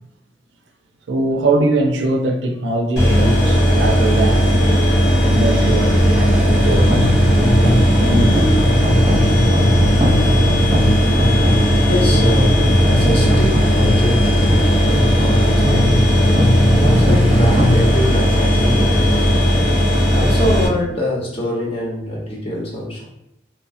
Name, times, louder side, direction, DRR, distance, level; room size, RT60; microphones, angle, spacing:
voice 1, 1.1-4.8 5.2-7.2 8.0-8.4, right 2 dB, 75° right, 0.5 m, -21 dB
sound 1, 3.0-20.7, equal, 65° left, 0.8 m, -15 dB
sound 2, 6.5-18.9, left 1 dB, 25° right, 0.6 m, -21 dB
voice 2, 11.8-16.2 16.7-19.4 20.1-23.0, left 1 dB, 30° left, 0.8 m, -24 dB
3.1 x 2.0 x 2.6 m
head